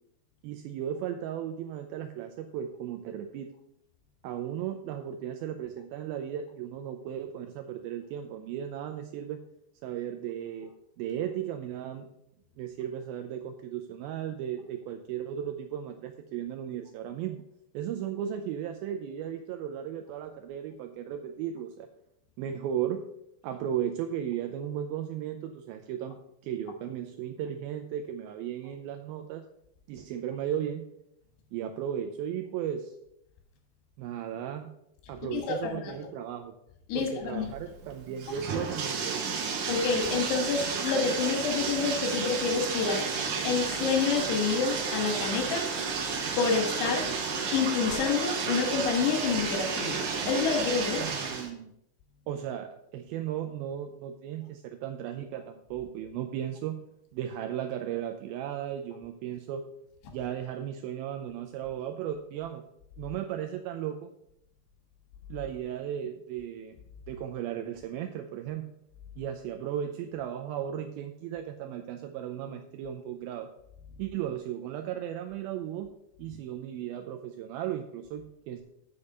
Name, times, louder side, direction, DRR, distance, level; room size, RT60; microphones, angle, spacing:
voice 1, 0.4-3.5 4.2-9.4 9.8-10.7 11.0-12.1 12.6-17.4 17.7-21.9 22.4-23.0 23.4-26.2 26.4-29.4 29.9-30.9 31.5-33.0 34.0-34.7 35.1-36.6 37.0-39.2 51.0-51.7 52.3-56.8 57.1-59.7 60.1-62.6 63.0-64.1 65.3-66.8 67.1-68.7 69.2-73.5 74.0-75.9 76.2-78.6, right 10 dB, 85° right, 5 dB, 2.2 m, -35 dB
voice 2, 35.3-35.8 36.9-37.5 39.7-43.1 43.4-45.7 46.4-47.1 47.5-51.1, left 5 dB, 85° left, 4 dB, 3.5 m, -28 dB
Bathtub (filling or washing), 37.4-51.5, right 5 dB, 60° right, 2.2 m, -32 dB
8.3 x 5.2 x 6.6 m, 0.79 s
omnidirectional pair, 4.7 m